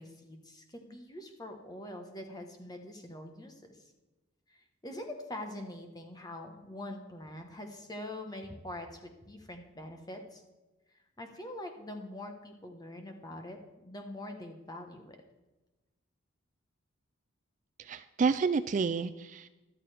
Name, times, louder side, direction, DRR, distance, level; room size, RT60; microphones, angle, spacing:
voice 1, 0.0-3.9 4.5-10.4 11.2-15.2, left 1 dB, 20° left, 5 dB, 1.2 m, -44 dB
voice 2, 17.8-19.5, right 5 dB, 35° right, 11 dB, 0.3 m, -29 dB
13.0 x 12.5 x 3.4 m, 1.1 s
head